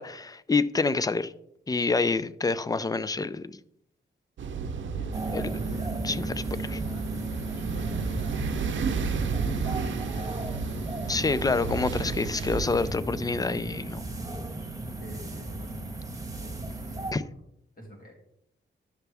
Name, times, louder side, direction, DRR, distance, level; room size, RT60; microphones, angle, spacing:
voice 1, 0.0-1.3 1.7-3.6 5.3-5.5 6.0-6.2 11.1-14.0 17.1-17.2, left 3 dB, 20° left, 0.4 m, -27 dB
sound 1, 4.4-12.9, right 5 dB, 85° right, 0.8 m, -33 dB
voice 2, 4.7-8.5 9.2-11.9 15.0-15.8 16.4-17.3 17.7-18.2, equal, 50° left, 2.7 m, -45 dB
sound 2, 5.1-17.1, right 2 dB, 20° right, 1.4 m, -35 dB
11.5 x 7.0 x 3.4 m
wide cardioid pair, 100°, 19 cm